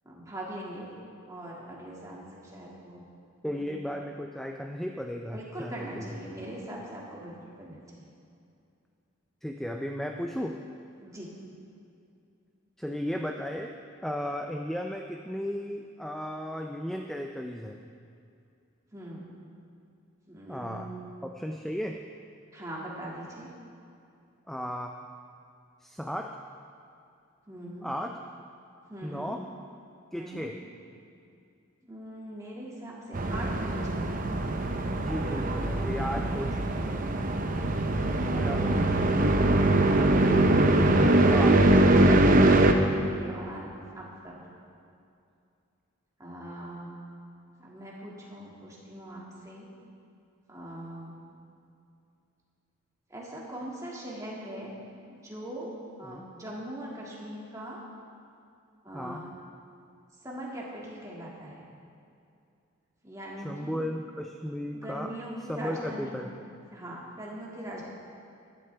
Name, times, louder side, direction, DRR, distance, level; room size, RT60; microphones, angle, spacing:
voice 1, 0.0-0.9 1.3-3.1 3.5-3.6 5.3-7.8 11.0-11.3 18.9-19.2 20.3-21.1 22.5-23.5 27.5-27.9 28.9-29.4 30.1-30.5 31.9-34.2 38.0-38.6 42.9-43.6 43.9-44.4 46.2-46.9 47.6-49.7 50.5-51.2 53.1-54.7 55.1-57.8 58.8-59.3 60.2-61.6 63.0-63.8 64.7-66.1 66.7-67.8, right 1 dB, 15° right, -5 dB, 2.0 m, -41 dB
voice 2, 3.4-6.1 9.4-10.6 12.8-13.8 14.0-17.8 20.5-20.9 21.2-22.0 24.5-25.0 25.8-26.4 27.8-28.1 29.0-29.4 30.1-30.6 35.0-37.1 38.3-38.8 40.9-41.6 42.1-42.3 56.0-56.2 58.9-59.2 63.4-65.1 65.5-66.3, equal, ahead, 3 dB, 0.4 m, -35 dB
sound 1, 33.1-42.7, right 1 dB, 40° right, 0.7 m, -22 dB
15.5 x 11.5 x 3.4 m, 2.5 s
head